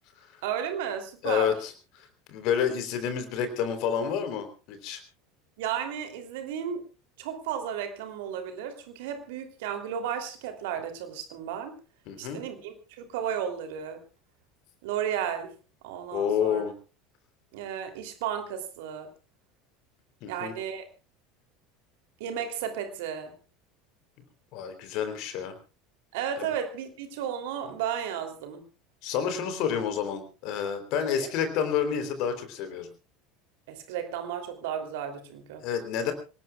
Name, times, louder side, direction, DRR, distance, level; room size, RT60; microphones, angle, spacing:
voice 1, 0.4-1.6 5.6-6.8 7.2-11.7 12.2-14.0 14.8-15.5 15.8-16.6 17.5-19.1 20.3-20.8 22.2-23.3 26.1-28.7 31.2-31.3 33.7-35.6, right 8 dB, 60° right, 6 dB, 3.2 m, -33 dB
voice 2, 1.2-1.7 2.0-5.0 12.1-12.4 16.1-16.7 20.2-20.5 24.5-25.5 26.4-26.5 29.0-32.9 35.6-36.1, left 8 dB, 50° left, 8 dB, 3.6 m, -29 dB
26.5 x 19.0 x 2.4 m, 0.33 s
figure-of-eight pair, 70°, 0 cm